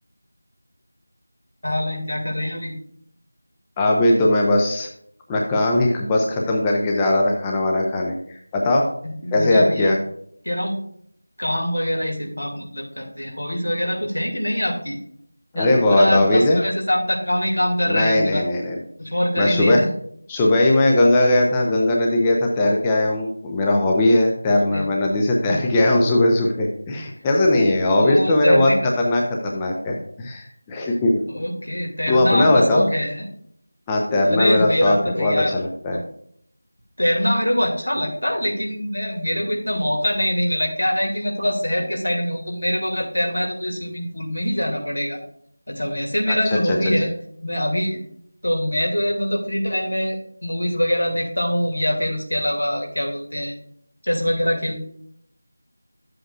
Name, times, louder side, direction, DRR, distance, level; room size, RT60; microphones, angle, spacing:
voice 1, 1.6-2.7 9.0-9.9 10.4-10.8 11.4-15.0 15.5-18.4 19.0-19.9 24.7-24.9 27.9-28.9 31.3-33.3 34.3-35.6 35.9-36.0 37.0-45.2 45.7-47.1 47.4-48.0 48.4-53.6 54.0-54.8, equal, 85° left, 0 dB, 2.7 m, -23 dB
voice 2, 3.8-4.9 5.3-8.9 9.3-10.0 15.5-16.6 17.9-18.8 19.4-19.8 20.3-28.7 29.0-31.2 32.1-32.9 33.9-36.0 46.3-46.4 46.7-46.8, left 1 dB, 10° left, 0 dB, 0.7 m, -19 dB
11.0 x 7.8 x 2.5 m, 0.66 s
figure-of-eight pair, 170°, 0 cm